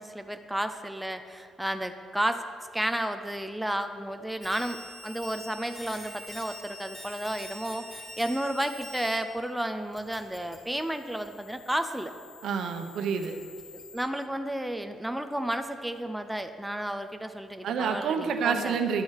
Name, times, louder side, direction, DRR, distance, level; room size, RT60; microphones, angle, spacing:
voice 1, 0.0-2.4 2.7-12.1 13.7-18.8, right 1 dB, 5° right, 7 dB, 0.5 m, -32 dB
sound 1, 4.4-9.2 9.4-14.0, left 1 dB, 20° left, 2.3 m, -46 dB
voice 2, 12.4-13.3 17.6-19.0, right 6 dB, 70° right, 6 dB, 1.0 m, -28 dB
11.5 x 7.5 x 6.5 m, 2.3 s
cardioid pair, 125°, 0 cm